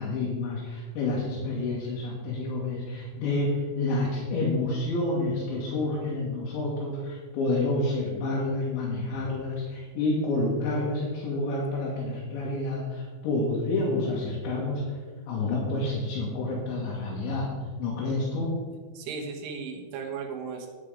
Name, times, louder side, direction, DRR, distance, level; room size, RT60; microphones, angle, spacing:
voice 1, 0.0-15.0 15.3-17.5 17.8-18.5, left 2 dB, 70° left, -5 dB, 3.9 m, -29 dB
voice 2, 19.0-20.7, right 5 dB, 80° right, 1 dB, 3.9 m, -36 dB
9.7 x 9.4 x 5.0 m, 1.5 s
omnidirectional pair, 5.6 m